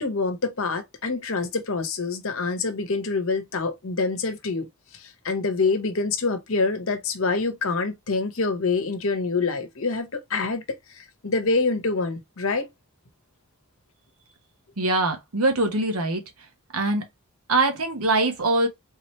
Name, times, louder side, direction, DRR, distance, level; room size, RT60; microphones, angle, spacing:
voice 1, 0.0-10.6 10.9-12.7, left 4 dB, 65° left, 0.9 m, -26 dB
voice 2, 14.8-16.2 16.7-17.1 17.5-18.7, right 2 dB, 80° right, 1.2 m, -23 dB
3.9 x 2.9 x 3.1 m
head